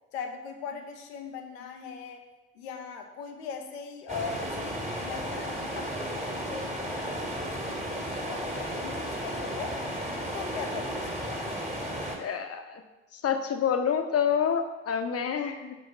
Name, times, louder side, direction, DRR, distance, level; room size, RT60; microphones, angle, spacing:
voice 1, 0.1-2.2 2.5-9.8 10.2-11.5, left 5 dB, 90° left, 5 dB, 0.6 m, -40 dB
sound 1, 4.1-12.2, equal, 20° right, 1.8 m, -34 dB
voice 2, 12.2-12.8 13.1-15.7, left 7 dB, 50° left, 7 dB, 0.8 m, -28 dB
5.0 x 3.9 x 5.5 m, 1.1 s
hypercardioid pair, 40°, 31 cm